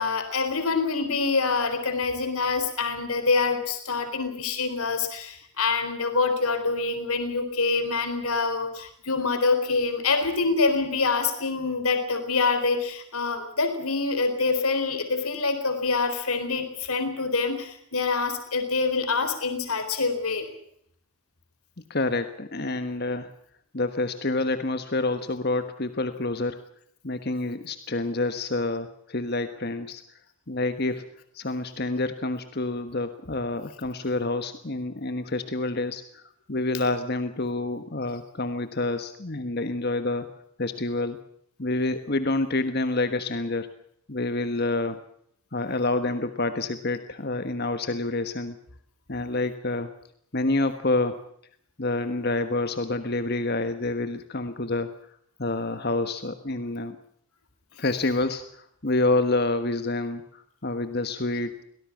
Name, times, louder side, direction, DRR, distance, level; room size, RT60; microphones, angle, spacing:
voice 1, 0.0-20.5, left 4 dB, 85° left, 7 dB, 4.1 m, -26 dB
voice 2, 21.9-23.3 23.7-26.6 27.0-30.0 30.5-31.1 31.3-36.2 36.5-40.3 40.6-41.2 41.6-43.7 44.1-45.0 45.5-48.6 49.1-49.9 50.3-51.2 51.8-54.9 55.4-57.0 57.8-61.6, left 2 dB, 45° left, 9 dB, 1.4 m, -28 dB
24.0 x 18.5 x 7.3 m, 0.68 s
head